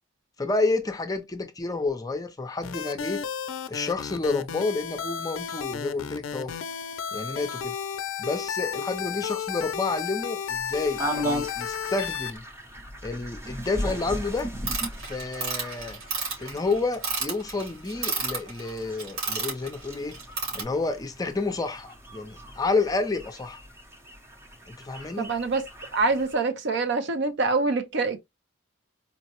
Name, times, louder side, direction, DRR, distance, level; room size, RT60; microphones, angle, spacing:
voice 1, 0.4-3.2 3.7-6.6 7.1-7.7 8.2-12.4 13.0-14.5 15.0-16.0 16.4-20.2 20.5-23.6 24.7-25.3, left 3 dB, 20° left, 0.5 m, -29 dB
sound 1, 2.6-12.4, left 7 dB, 80° left, 0.4 m, -33 dB
sound 2, 10.5-26.4, equal, 15° right, 0.7 m, -38 dB
sound 3, 14.7-20.6, right 4 dB, 85° right, 2.5 m, -30 dB
voice 2, 25.2-25.6 25.9-28.2, right 3 dB, 60° right, 0.5 m, -25 dB
4.4 x 2.0 x 2.8 m
head